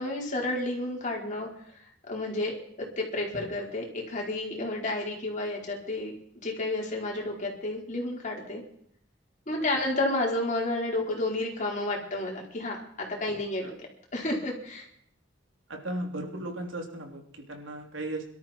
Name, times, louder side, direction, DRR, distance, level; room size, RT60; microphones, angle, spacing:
voice 1, 0.0-1.5 2.1-2.5 2.8-8.6 9.5-13.7 14.1-14.9, left 2 dB, 40° left, -1 dB, 4.7 m, -31 dB
voice 2, 15.7-18.3, right 1 dB, 90° right, 2 dB, 3.3 m, -36 dB
23.0 x 13.0 x 4.6 m, 0.67 s
head